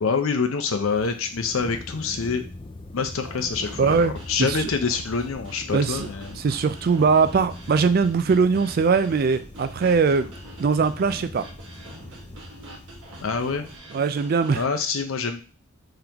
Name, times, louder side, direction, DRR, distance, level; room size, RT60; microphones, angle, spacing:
voice 1, 0.0-2.4 2.9-6.4 13.2-13.6 14.5-15.4, left 5 dB, 90° left, 6 dB, 0.6 m, -26 dB
sound 1, 0.9-13.8, left 2 dB, 25° left, 0.4 m, -42 dB
sound 2, 3.2-14.7, right 1 dB, 65° right, 1.1 m, -45 dB
voice 2, 3.8-4.1 4.4-4.7 5.7-6.1 6.4-10.3 10.6-11.5 13.9-14.6, right 5 dB, 45° right, 11 dB, 0.3 m, -21 dB
3.7 x 3.5 x 2.9 m, 0.33 s
head